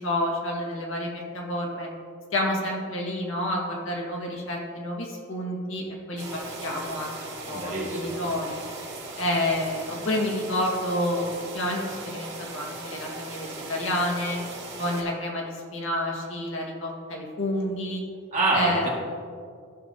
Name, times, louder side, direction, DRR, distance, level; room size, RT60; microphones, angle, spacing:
voice 1, 0.0-1.9 2.3-8.6 9.2-14.4 14.8-18.0 18.5-18.9, left 1 dB, 75° left, -2 dB, 1.9 m, -29 dB
sound 1, 6.2-15.0, right 3 dB, 55° right, 2.3 m, -39 dB
voice 2, 7.5-8.2 18.3-18.9, right 2 dB, 35° right, -4 dB, 2.0 m, -26 dB
15.0 x 6.6 x 2.9 m, 2.3 s
head